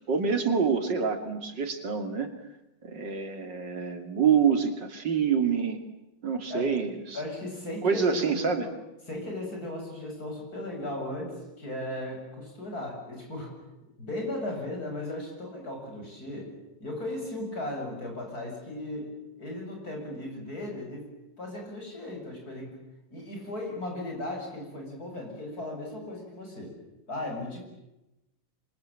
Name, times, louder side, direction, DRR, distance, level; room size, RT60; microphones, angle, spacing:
voice 1, 0.1-2.3 2.8-5.8 6.2-7.2 7.8-8.7, right 6 dB, 65° right, 7 dB, 3.1 m, -26 dB
voice 2, 7.1-8.7 9.1-13.5 14.0-16.5 16.8-21.1 21.4-22.8 23.1-26.8 27.1-27.6, left 1 dB, 50° left, 2 dB, 8.6 m, -36 dB
27.0 x 24.5 x 9.0 m, 0.95 s
omnidirectional pair, 2.1 m